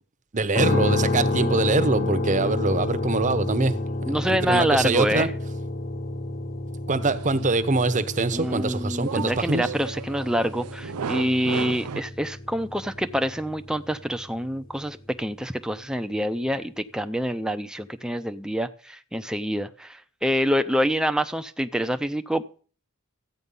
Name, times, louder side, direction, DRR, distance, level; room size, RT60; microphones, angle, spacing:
voice 1, 0.3-3.8 4.2-5.3 6.9-9.7, right 3 dB, 35° right, 0.8 m, -24 dB
sound 1, 0.5-14.6, left 2 dB, 40° left, 1.0 m, -29 dB
voice 2, 4.1-5.3 8.3-22.6, equal, 5° right, 0.5 m, -26 dB
sound 2, 7.0-12.0, right 6 dB, 80° right, 0.5 m, -36 dB
14.0 x 9.1 x 5.5 m
head